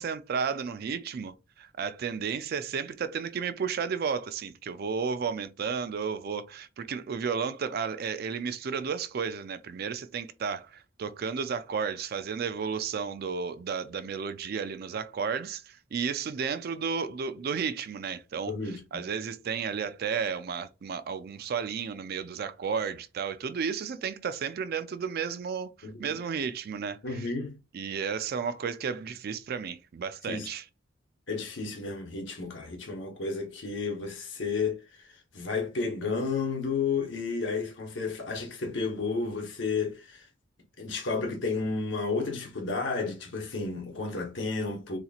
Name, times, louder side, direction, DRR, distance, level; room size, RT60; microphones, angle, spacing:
voice 1, 0.0-18.5 18.9-27.3 27.7-30.6, right 6 dB, 50° right, 0.3 m, -33 dB
voice 2, 18.5-18.8 25.8-26.2 27.0-27.6 30.3-30.5 31.3-40.3 40.8-45.0, left 4 dB, 65° left, 1.0 m, -32 dB
4.0 x 2.8 x 2.3 m
head